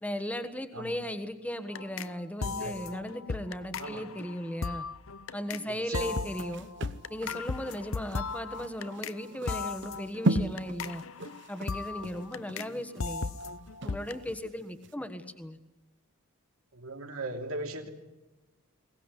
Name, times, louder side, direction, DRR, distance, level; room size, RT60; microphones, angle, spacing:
voice 1, 0.0-4.9 5.3-6.7 7.1-11.0 11.5-13.3 13.8-15.6, equal, 5° left, 10 dB, 1.3 m, -37 dB
sound 1, 1.7-2.1 2.4-5.7 5.9-9.2 9.5-12.7 13.0-14.2, left 4 dB, 60° left, 0.8 m, -37 dB
voice 2, 2.4-2.8 3.8-4.0 5.7-6.2 16.7-17.9, right 2 dB, 75° right, 4 dB, 3.1 m, -38 dB
sound 2, 5.9-14.4 14.8-14.9, right 2 dB, 55° right, 1.0 m, -36 dB
22.0 x 19.0 x 9.9 m, 1.1 s
head